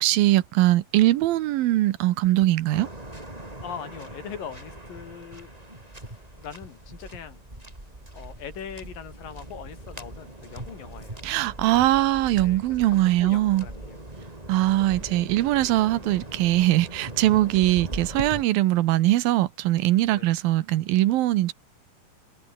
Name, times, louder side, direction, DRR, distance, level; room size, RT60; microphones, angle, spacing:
voice 1, 0.0-2.9 11.2-13.7 14.5-21.5, right 15 dB, 85° right, 2.8 m, -21 dB
Waves surf, 2.7-18.4, right 1 dB, 10° right, 3.9 m, -40 dB
voice 2, 3.6-5.5 5.9-7.4 8.1-11.2 12.4-14.0 20.1-20.3, left 7 dB, 70° left, 4.6 m, -41 dB
omnidirectional pair, 4.1 m